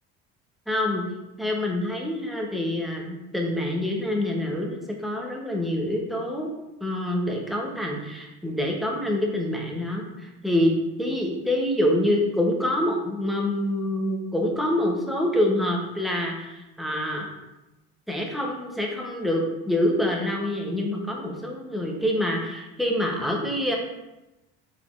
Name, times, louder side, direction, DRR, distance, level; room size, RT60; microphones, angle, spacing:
voice 1, 0.7-1.0 1.4-6.5 6.8-17.3 18.1-23.7, left 1 dB, ahead, -1 dB, 0.7 m, -26 dB
4.0 x 3.7 x 2.4 m, 0.98 s
supercardioid pair, 105°, 31 cm